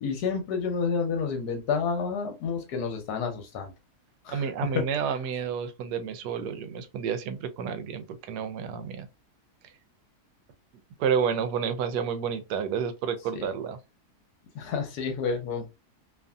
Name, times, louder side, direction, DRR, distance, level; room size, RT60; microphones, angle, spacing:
voice 1, 0.0-3.7 4.3-4.8 13.3-13.5 14.5-15.7, left 5 dB, 75° left, 1.3 m, -30 dB
voice 2, 4.3-9.1 11.0-13.8, right 7 dB, 80° right, 1.1 m, -30 dB
2.9 x 2.5 x 2.3 m
omnidirectional pair, 1.7 m